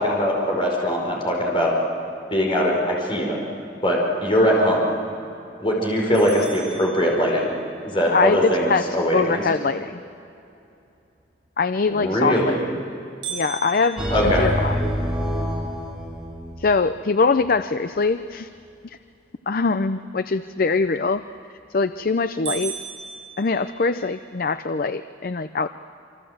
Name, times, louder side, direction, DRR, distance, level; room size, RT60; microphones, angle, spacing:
voice 1, 0.0-1.7 2.3-3.4 3.8-4.9 5.6-7.5 7.8-9.4 11.9-12.6 14.1-14.5, equal, 30° left, -1 dB, 4.7 m, -21 dB
sound 1, 6.1-7.7 13.2-15.4 15.9-16.0 16.5-16.6 17.2-17.6 21.2-21.6 22.0-22.1 22.5-24.2, right 7 dB, 80° right, 8.0 m, -37 dB
voice 2, 8.1-8.8 9.1-10.0 11.6-12.7 13.3-14.8 16.6-18.5 19.5-21.2 21.7-22.8 23.4-25.7, left 4 dB, 50° left, 11 dB, 0.5 m, -23 dB
sound 2, 14.0-16.9, equal, 5° right, 3.6 m, -26 dB
27.0 x 25.5 x 7.9 m, 2.7 s
head